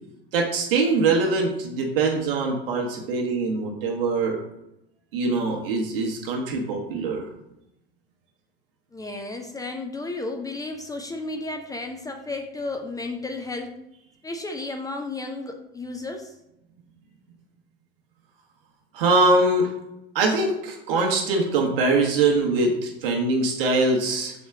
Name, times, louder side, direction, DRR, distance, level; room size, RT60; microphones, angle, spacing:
voice 1, 0.3-4.4 5.1-7.3 18.9-19.7 20.1-24.3, right 3 dB, 60° right, 0 dB, 1.3 m, -23 dB
voice 2, 8.9-13.7 14.2-16.4, left 2 dB, 10° left, 4 dB, 0.5 m, -33 dB
6.4 x 4.2 x 3.5 m, 0.86 s
figure-of-eight pair, 75°, 31 cm